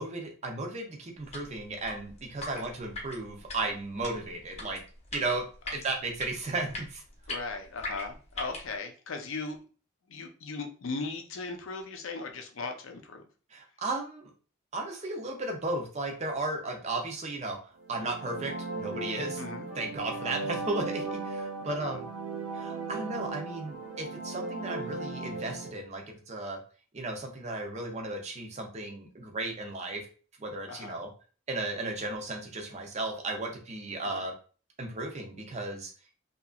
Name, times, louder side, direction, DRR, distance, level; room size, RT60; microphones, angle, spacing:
voice 1, 0.0-4.8 5.1-5.4 5.7-7.0 13.5-14.3 14.7-17.6 17.9-19.4 19.8-22.0 22.5-26.6 26.9-30.1 30.4-31.1 31.5-34.3 34.8-35.9, right 2 dB, 30° right, 3 dB, 0.5 m, -35 dB
sound 1, 1.2-8.7, left 2 dB, 30° left, 0.7 m, -42 dB
voice 2, 7.3-9.6 10.1-13.3 19.4-19.7 21.6-22.0 30.7-31.0 34.0-34.2, left 3 dB, 65° left, 4 dB, 0.5 m, -38 dB
sound 2, 17.8-25.7, right 3 dB, 80° right, 0.5 m, -37 dB
2.8 x 2.4 x 2.3 m, 0.39 s
head